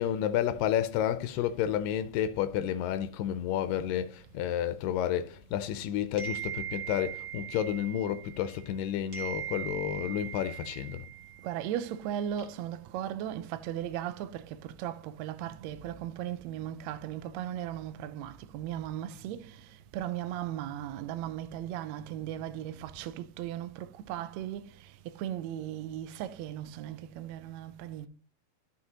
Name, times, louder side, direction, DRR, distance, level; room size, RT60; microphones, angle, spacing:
voice 1, 0.0-11.1, left 10 dB, 90° left, 2.2 m, -31 dB
sound 1, 6.2-8.8 9.1-11.7, right 11 dB, 40° right, 1.0 m, -40 dB
voice 2, 11.4-19.6 19.9-24.7 25.0-28.1, right 11 dB, 85° right, 1.5 m, -37 dB
12.0 x 5.7 x 2.8 m
omnidirectional pair, 3.8 m